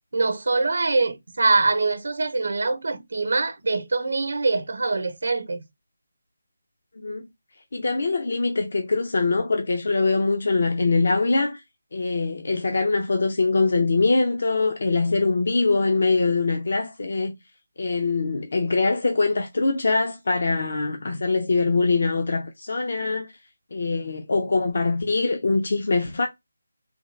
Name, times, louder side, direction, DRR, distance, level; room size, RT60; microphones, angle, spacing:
voice 1, 0.1-5.6, right 3 dB, 70° right, 0.8 m, -23 dB
voice 2, 7.0-7.3 7.7-11.6 11.9-17.4 17.8-23.4 23.7-26.3, left 3 dB, 60° left, 0.6 m, -23 dB
3.6 x 2.3 x 3.2 m
figure-of-eight pair, 160°, 0 cm